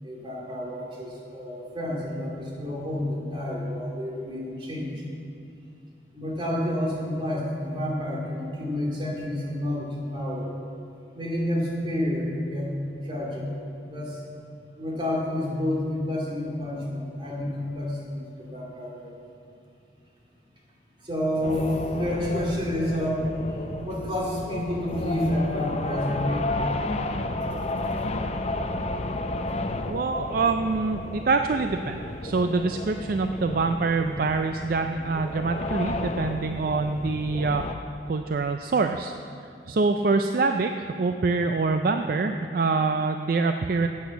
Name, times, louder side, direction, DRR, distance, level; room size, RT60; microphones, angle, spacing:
voice 1, 0.0-4.9 6.1-10.5 11.1-12.7 13.0-13.6 13.8-14.2 14.8-19.1 21.0-26.6, left 1 dB, 30° right, -4 dB, 2.6 m, -29 dB
sound 1, 21.4-37.7, left 2 dB, 35° left, 0.6 m, -32 dB
voice 2, 29.9-37.6 38.1-39.1 39.7-43.9, right 4 dB, 50° right, 6 dB, 0.4 m, -25 dB
10.0 x 8.6 x 7.0 m, 2.5 s
head